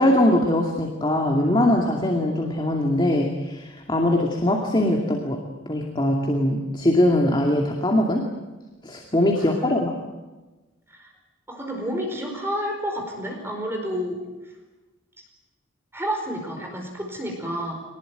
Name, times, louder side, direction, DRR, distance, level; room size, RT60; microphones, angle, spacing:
voice 1, 0.0-5.4 5.7-8.2 8.8-10.0, left 1 dB, 25° left, 1 dB, 2.4 m, -21 dB
voice 2, 11.5-14.2 15.9-17.8, equal, 10° right, 2 dB, 4.8 m, -30 dB
24.5 x 19.5 x 9.3 m, 1.2 s
head